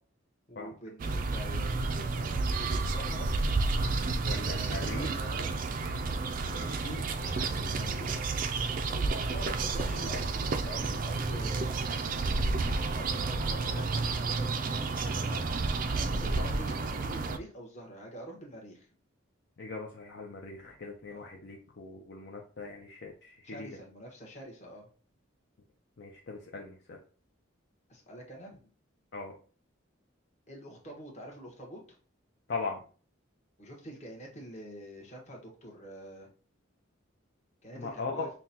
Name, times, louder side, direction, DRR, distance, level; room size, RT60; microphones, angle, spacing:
voice 1, 0.5-3.3 4.6-5.5 7.1-8.3 8.9-11.7 12.8-15.6 16.1-18.9 21.1-21.3 23.4-24.9 27.9-28.6 30.5-32.0 33.6-36.3 37.6-38.3, equal, 35° left, -1 dB, 1.2 m, -46 dB
sound 1, 1.0-17.4, right 3 dB, 40° right, 0.3 m, -31 dB
voice 2, 4.2-5.1 6.4-7.0 12.6-12.8 19.6-23.7 26.0-27.0 29.1-29.3 32.5-32.8 37.8-38.3, left 3 dB, 55° left, 0 dB, 0.5 m, -39 dB
5.7 x 2.2 x 2.8 m, 0.39 s
head